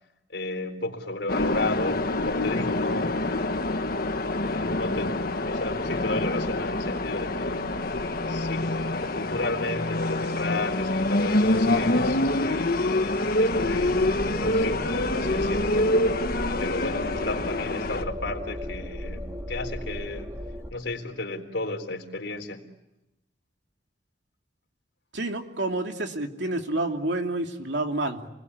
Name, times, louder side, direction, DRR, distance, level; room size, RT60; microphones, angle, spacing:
voice 1, 0.3-3.2 4.1-7.7 8.3-12.7 13.4-16.0 16.6-20.3 20.7-22.7, left 2 dB, 75° left, 3 dB, 3.9 m, -33 dB
sound 1, 1.3-18.0, left 2 dB, 55° left, 1.5 m, -26 dB
sound 2, 13.5-20.7, equal, 15° right, 3.0 m, -35 dB
voice 2, 25.1-28.3, right 2 dB, 75° right, 4 dB, 2.8 m, -29 dB
29.0 x 21.0 x 9.7 m, 0.93 s
head